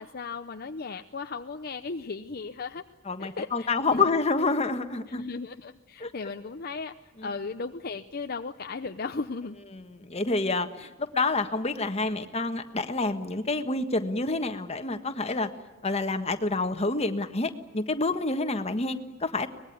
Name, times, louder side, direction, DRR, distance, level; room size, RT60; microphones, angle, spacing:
voice 1, 0.0-2.8 3.2-4.0 5.1-6.9 7.2-9.6, left 4 dB, 50° left, 7 dB, 0.8 m, -36 dB
voice 2, 3.0-5.2 6.0-6.1 7.2-7.3 9.7-15.5 15.8-19.5, left 3 dB, 30° left, 8 dB, 1.5 m, -28 dB
24.0 x 20.5 x 9.4 m, 1.2 s
head